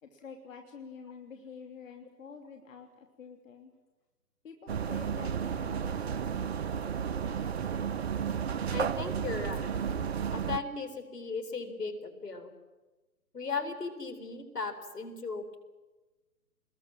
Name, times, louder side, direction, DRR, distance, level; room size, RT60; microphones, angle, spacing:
voice 1, 0.0-3.7 4.4-6.5, left 5 dB, 55° left, 4 dB, 2.9 m, -48 dB
sound 1, 4.7-10.6, right 7 dB, 40° right, 0.8 m, -32 dB
voice 2, 8.7-9.7 10.3-12.5 13.3-15.6, left 4 dB, 75° left, 10 dB, 4.3 m, -37 dB
27.5 x 21.5 x 7.5 m, 1.2 s
figure-of-eight pair, 140°, 48 cm